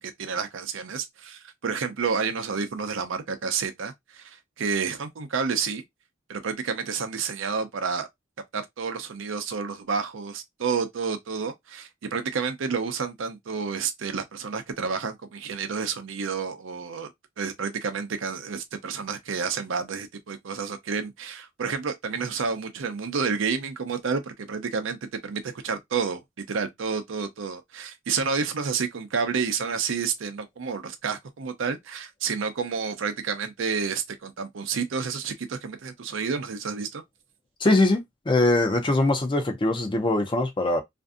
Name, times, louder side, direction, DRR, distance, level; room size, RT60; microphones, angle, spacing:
voice 1, 0.0-5.8 6.3-8.1 8.5-17.1 17.4-37.0, right 5 dB, 80° right, 0.5 m, -30 dB
voice 2, 37.6-40.8, left 2 dB, 25° left, 0.5 m, -22 dB
2.5 x 2.5 x 2.3 m
head